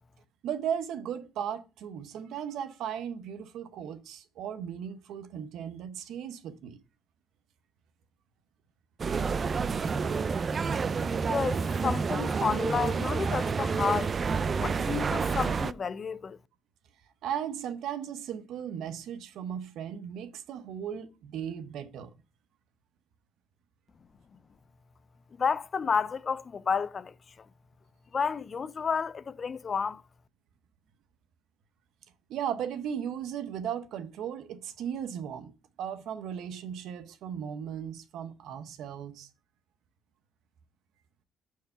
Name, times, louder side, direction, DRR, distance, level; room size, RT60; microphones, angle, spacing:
voice 1, 0.4-6.8 17.2-22.1 32.3-39.3, right 8 dB, 85° right, 0.8 m, -36 dB
sound 1, 9.0-15.7, right 5 dB, 40° right, 0.4 m, -29 dB
voice 2, 11.2-14.1 14.6-16.4 25.4-27.1 28.1-30.0, left 6 dB, 45° left, 0.5 m, -31 dB
6.3 x 4.7 x 5.6 m
cardioid pair, 90°, 0 cm